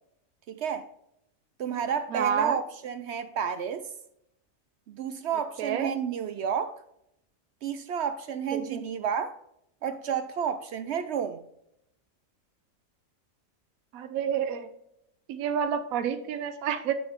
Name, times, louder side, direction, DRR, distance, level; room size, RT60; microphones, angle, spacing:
voice 1, 0.5-0.9 1.6-3.8 4.9-6.8 7.6-9.4 9.8-11.4, right 7 dB, 65° right, 0.7 m, -31 dB
voice 2, 2.1-2.6 5.6-5.9 8.5-8.8 13.9-14.7 15.3-16.9, right 8 dB, 80° right, 1.1 m, -29 dB
8.0 x 6.5 x 3.6 m
omnidirectional pair, 1.4 m